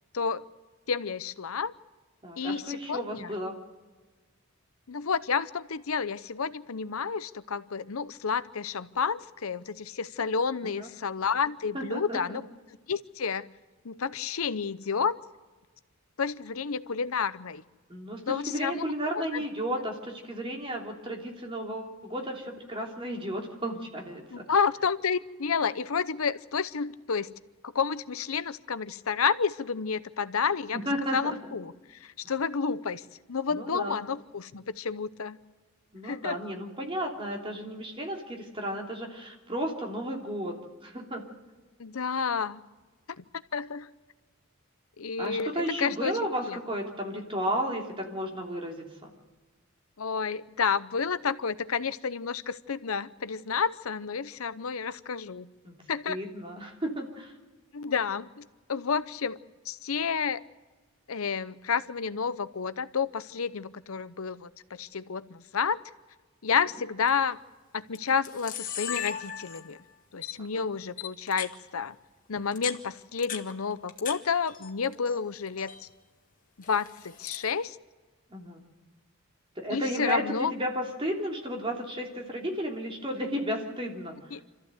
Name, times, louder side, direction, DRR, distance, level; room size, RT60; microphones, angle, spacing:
voice 1, 0.9-1.7 2.4-3.3 4.9-12.4 12.9-13.5 13.8-15.2 16.2-17.6 18.3-19.4 24.3-27.4 27.6-30.8 31.1-33.0 33.3-35.4 36.0-36.4 41.8-42.6 43.1-43.2 43.5-43.9 45.0-46.6 50.0-55.5 55.9-56.2 57.7-59.4 59.7-60.4 61.1-65.8 66.4-67.4 67.7-69.8 70.1-72.0 72.3-75.7 76.7-77.8 79.7-80.5 84.3-84.4, left 6 dB, 85° left, 14 dB, 0.8 m, -30 dB
voice 2, 2.2-3.6 10.8-10.9 11.7-12.4 17.9-24.4 30.8-31.4 33.5-34.0 35.9-40.5 40.8-41.2 45.2-49.1 55.6-55.8 56.1-57.3 70.5-70.6 78.3-78.6 79.6-84.2, equal, 25° right, 1 dB, 3.1 m, -33 dB
Camera, 67.1-67.3 67.9-68.0 68.2-69.8 70.2-70.3 71.0-71.5 72.4-74.2 74.5-75.2 75.5-75.8 76.6-77.5, left 9 dB, 40° left, 1.7 m, -37 dB
26.0 x 14.5 x 8.0 m, 1.3 s
head